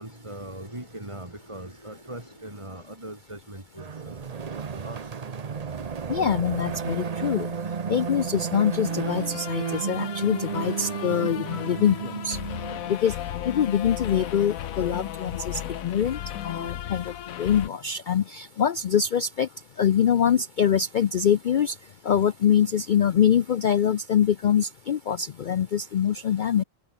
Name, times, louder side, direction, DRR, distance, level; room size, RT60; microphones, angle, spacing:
voice 1, 0.0-4.3 4.7-5.3, right 1 dB, 20° right, 4.1 m, -40 dB
sound 1, 3.8-13.0, right 6 dB, 35° right, 0.7 m, -33 dB
voice 2, 6.1-7.5 7.9-12.4 12.9-13.1 13.5-16.2 16.4-17.1 17.4-19.5 19.8-21.7 22.1-26.6, left 8 dB, 65° left, 0.5 m, -24 dB
sound 2, 8.9-17.7, left 11 dB, 85° left, 1.3 m, -36 dB
open air
omnidirectional pair, 1.4 m